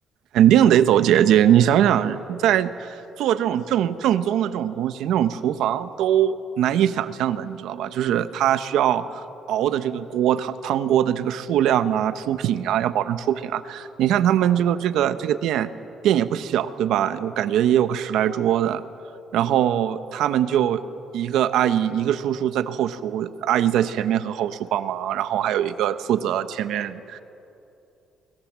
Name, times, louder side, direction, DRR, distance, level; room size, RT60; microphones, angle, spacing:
voice 1, 0.3-9.2 9.5-15.7 16.0-18.8 19.3-20.8 21.1-27.2, right 10 dB, 75° right, 12 dB, 1.1 m, -21 dB
29.5 x 21.0 x 7.5 m, 2.8 s
cardioid pair, 165°, 0 cm